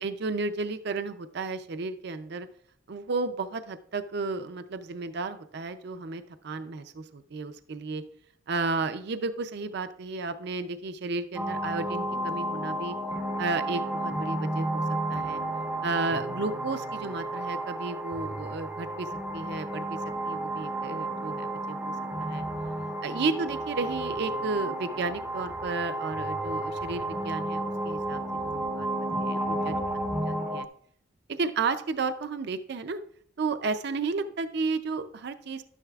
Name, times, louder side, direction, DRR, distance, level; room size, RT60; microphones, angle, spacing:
voice 1, 0.0-2.5 2.9-8.0 8.5-12.9 13.4-14.8 15.1-15.4 15.8-20.0 20.2-21.9 22.2-22.4 23.0-29.8 30.1-30.7 31.3-33.0 33.4-35.6, right 3 dB, 55° right, 10 dB, 0.5 m, -33 dB
sound 1, 11.4-30.7, right 1 dB, 10° right, 0.5 m, -32 dB
sound 2, 22.1-24.2 24.6-25.7 26.1-28.7 29.1-30.5, left 1 dB, 90° left, 2.5 m, -50 dB
12.0 x 9.9 x 2.3 m, 0.65 s
head